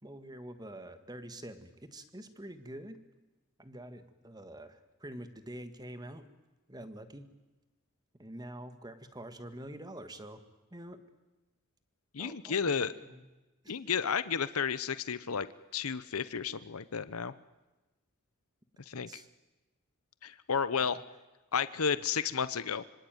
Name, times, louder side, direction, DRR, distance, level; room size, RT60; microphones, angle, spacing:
voice 1, 0.0-3.0 3.6-6.3 6.7-7.3 8.2-10.4 10.7-11.0 12.2-13.2 13.6-13.7 18.9-19.3 20.8-21.0, right 1 dB, 20° right, 10 dB, 1.8 m, -46 dB
voice 2, 12.1-12.9 13.7-17.3 18.9-19.2 20.2-21.0 21.5-22.8, left 6 dB, 80° left, 15 dB, 0.8 m, -32 dB
25.5 x 25.5 x 9.2 m, 1.1 s
head